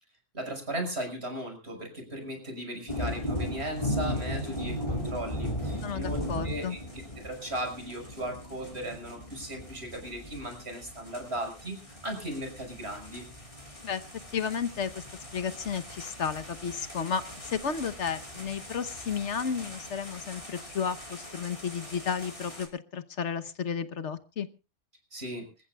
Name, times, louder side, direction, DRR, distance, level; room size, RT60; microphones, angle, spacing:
voice 1, 0.3-6.8 7.2-13.2 25.1-25.5, right 1 dB, 60° right, 4 dB, 6.2 m, -37 dB
sound 1, 2.9-22.7, equal, 25° left, 4.8 m, -38 dB
voice 2, 5.8-6.8 13.8-14.0 14.3-15.0 15.3-24.5, left 6 dB, 70° left, 11 dB, 1.4 m, -33 dB
27.5 x 14.5 x 2.4 m, 0.31 s
omnidirectional pair, 1.2 m